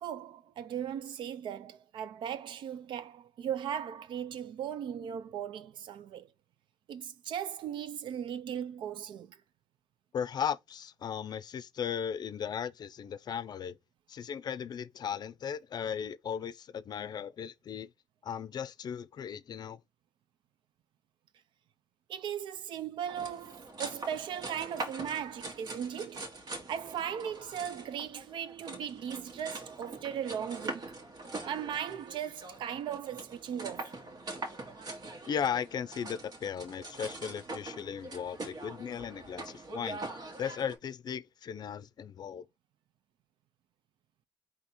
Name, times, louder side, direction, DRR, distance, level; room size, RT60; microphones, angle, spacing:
voice 1, 0.0-6.3 6.9-9.4 22.1-26.3 26.7-31.0 31.4-34.0, right 9 dB, 80° right, 0.5 m, -38 dB
voice 2, 10.1-13.8 14.1-17.9 18.2-19.8 35.3-40.0 40.4-42.5, left 8 dB, 60° left, 0.4 m, -36 dB
sound 1, 23.1-40.8, right 2 dB, 55° right, 1.5 m, -43 dB
4.2 x 2.8 x 4.1 m
cardioid pair, 70°, 8 cm